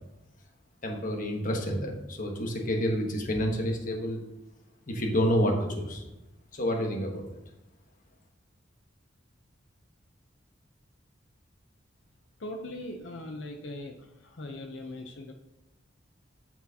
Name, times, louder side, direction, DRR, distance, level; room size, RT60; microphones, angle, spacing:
voice 1, 0.8-4.2 4.9-6.0 6.5-7.2, equal, 45° left, 1 dB, 1.2 m, -29 dB
voice 2, 12.4-15.3, left 1 dB, 75° left, 3 dB, 0.7 m, -40 dB
11.5 x 4.5 x 2.8 m, 0.96 s
head